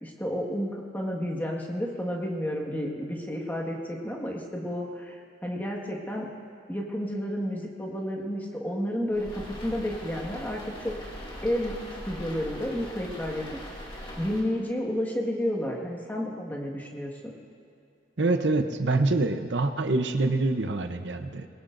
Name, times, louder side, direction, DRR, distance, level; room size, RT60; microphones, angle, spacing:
voice 1, 0.0-6.3 6.7-10.9 11.4-11.7 12.0-13.4 14.2-17.3, equal, 10° left, -1 dB, 1.7 m, -31 dB
sound 1, 9.1-14.4, left 1 dB, 30° left, 2.4 m, -41 dB
voice 2, 18.2-21.5, right 2 dB, 70° right, 7 dB, 0.8 m, -25 dB
21.5 x 19.0 x 2.6 m, 2.6 s
head